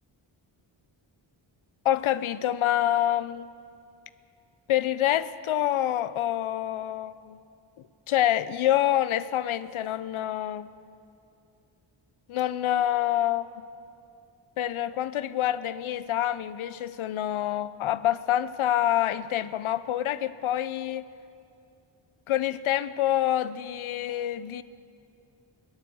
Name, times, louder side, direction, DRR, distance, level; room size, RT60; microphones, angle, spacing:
voice 1, 1.8-3.5 4.7-7.4 8.1-10.7 12.3-13.5 14.6-21.0 22.3-24.6, left 12 dB, 80° left, 15 dB, 0.6 m, -26 dB
17.5 x 12.0 x 7.0 m, 2.5 s
cardioid pair, 70°, 48 cm